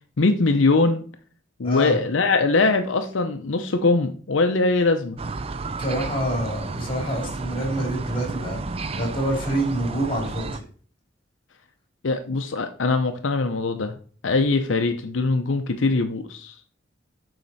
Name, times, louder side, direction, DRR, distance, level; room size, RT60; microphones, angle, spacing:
voice 1, 0.2-1.0 1.6-5.2 12.0-14.0 14.2-16.5, left 3 dB, 85° left, 6 dB, 0.7 m, -22 dB
voice 2, 1.6-2.0 5.8-8.6 9.0-10.6, right 1 dB, 25° left, 0 dB, 2.6 m, -26 dB
sound 1, 5.2-10.6, right 3 dB, 30° right, 0.4 m, -32 dB
7.5 x 4.9 x 4.1 m, 0.43 s
head